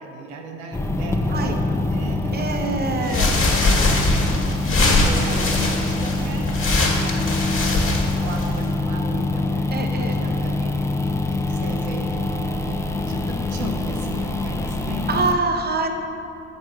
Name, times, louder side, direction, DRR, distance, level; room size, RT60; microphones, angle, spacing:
voice 1, 0.0-6.5 6.9-7.8 8.2-10.9 11.3-12.1 12.7-15.1, right 3 dB, 80° right, 1 dB, 0.8 m, -37 dB
sound 1, 0.7-15.3, left 2 dB, 10° left, 0.5 m, -25 dB
voice 2, 2.3-3.3 9.7-10.1 15.1-15.9, right 3 dB, 25° right, 4 dB, 0.9 m, -24 dB
sound 2, 3.0-8.7, left 2 dB, 35° left, 1.6 m, -22 dB
6.3 x 4.8 x 6.1 m, 2.9 s
hypercardioid pair, 60°, 36 cm